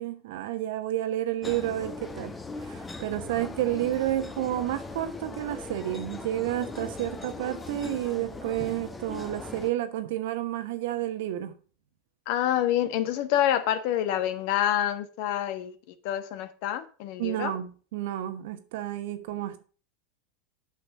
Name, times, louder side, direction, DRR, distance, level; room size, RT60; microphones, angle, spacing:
voice 1, 0.0-2.3 2.6-11.5 17.2-19.6, right 13 dB, 60° right, 1.1 m, -30 dB
sound 1, 1.4-9.7, left 3 dB, 15° left, 1.1 m, -39 dB
voice 2, 12.3-17.5, left 11 dB, 55° left, 1.2 m, -27 dB
8.5 x 6.0 x 5.9 m
figure-of-eight pair, 85°, 0 cm